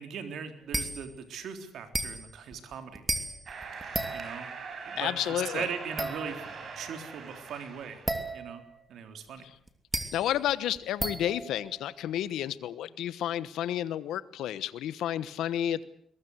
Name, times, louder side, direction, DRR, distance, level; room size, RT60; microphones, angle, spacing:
voice 1, 0.0-3.1 4.1-4.5 4.9-6.4 6.8-8.0 8.3-8.6 8.9-9.5, right 7 dB, 70° right, 7 dB, 3.8 m, -39 dB
sound 1, 0.7-1.1 1.9-4.6 6.0-6.7 8.1-8.8 9.7-12.1, right 1 dB, 10° right, 3.0 m, -35 dB
sound 2, 3.5-8.3, right 5 dB, 55° right, 5.9 m, -42 dB
voice 2, 5.0-5.7 10.1-15.8, left 11 dB, 85° left, 16 dB, 1.2 m, -31 dB
22.5 x 21.5 x 8.1 m, 0.66 s
cardioid pair, 90°, 0 cm